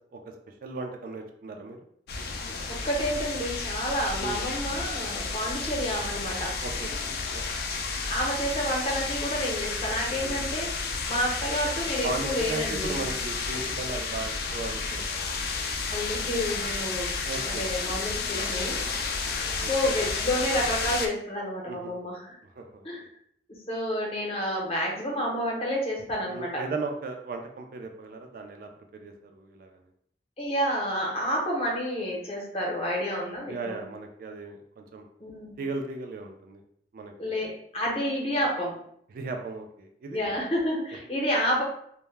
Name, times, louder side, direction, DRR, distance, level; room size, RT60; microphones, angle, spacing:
voice 1, 0.6-1.8 4.2-4.4 6.6-6.9 7.3-7.5 10.2-10.4 12.0-15.4 17.2-17.7 18.3-18.7 19.4-19.9 21.7-21.9 22.6-22.9 26.3-29.8 33.5-35.0 35.6-36.6 36.9-37.4 39.1-40.2, right 3 dB, 50° right, 4 dB, 0.3 m, -37 dB
sound 1, 2.1-21.1, left 4 dB, 60° left, 0.3 m, -31 dB
voice 2, 2.7-6.5 8.1-13.0 15.9-17.1 17.4-18.8 19.6-22.4 22.8-23.1 23.7-26.6 30.4-33.8 35.2-35.6 37.2-38.8 40.1-41.6, equal, 35° left, -2 dB, 0.7 m, -29 dB
2.1 x 2.0 x 3.2 m, 0.68 s
head